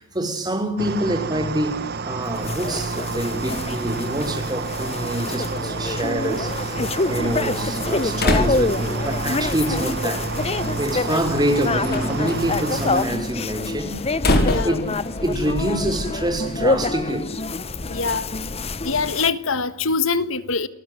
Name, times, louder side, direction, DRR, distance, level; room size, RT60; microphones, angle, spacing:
voice 1, 0.0-10.3 10.8-14.0 14.6-14.8 15.2-17.3, right 1 dB, 20° right, 5.4 m, -26 dB
sound 1, 0.8-13.1, right 4 dB, 50° right, 1.0 m, -29 dB
sound 2, 2.3-19.3, left 3 dB, 30° left, 0.9 m, -27 dB
Slam, 7.1-16.6, left 1 dB, 50° left, 5.4 m, -28 dB
voice 2, 14.4-14.8 17.9-18.3 18.8-20.7, left 4 dB, 70° left, 1.6 m, -23 dB
29.0 x 19.0 x 9.6 m
head